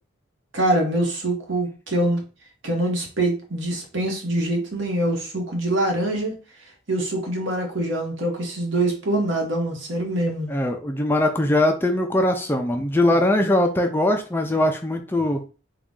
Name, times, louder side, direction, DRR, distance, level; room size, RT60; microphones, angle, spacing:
voice 1, 0.5-2.2 2.6-6.3 6.9-10.5, right 1 dB, 80° right, 1.3 m, -24 dB
voice 2, 10.5-15.4, left 1 dB, 10° left, 0.4 m, -21 dB
3.9 x 2.4 x 3.6 m
head